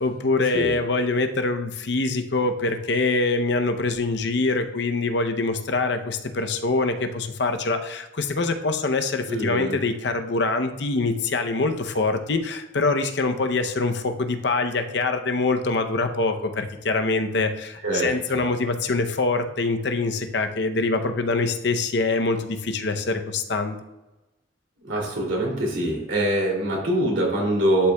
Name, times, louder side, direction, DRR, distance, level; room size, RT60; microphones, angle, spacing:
voice 1, 0.0-23.8, left 3 dB, 60° left, 6 dB, 0.6 m, -24 dB
voice 2, 9.3-9.8 17.8-18.4 24.8-27.9, right 1 dB, 85° right, -2 dB, 2.7 m, -24 dB
11.5 x 5.7 x 2.3 m, 1.0 s
head